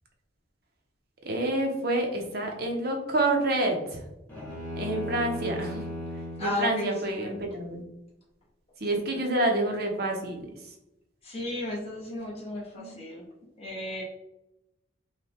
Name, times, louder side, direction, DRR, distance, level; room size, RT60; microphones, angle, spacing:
voice 1, 1.2-4.0 4.7-5.8 6.4-7.8 8.8-10.5 12.7-12.9, right 2 dB, 50° right, 2 dB, 1.0 m, -28 dB
sound 1, 4.3-6.6, left 1 dB, 10° left, 1.2 m, -36 dB
voice 2, 6.4-7.3 8.9-9.2 11.2-13.2 13.6-14.0, left 1 dB, 30° left, -5 dB, 1.4 m, -34 dB
5.5 x 2.5 x 3.6 m, 0.90 s
head